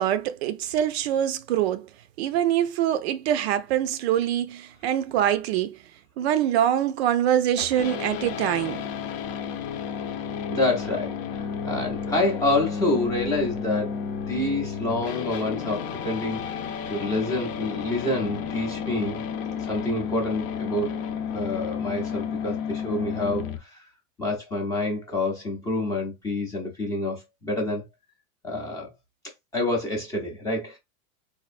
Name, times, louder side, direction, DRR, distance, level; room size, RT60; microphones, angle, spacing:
voice 1, 0.0-1.9 2.2-5.8 6.2-8.9, right 10 dB, 55° right, 0.4 m, -24 dB
sound 1, 7.6-23.6, left 7 dB, 55° left, 0.7 m, -32 dB
voice 2, 10.5-19.2 19.6-21.0 21.3-23.9 24.2-27.8 28.4-28.9 29.5-30.8, left 2 dB, 10° left, 0.5 m, -28 dB
4.2 x 2.6 x 2.4 m
supercardioid pair, 170°, 39 cm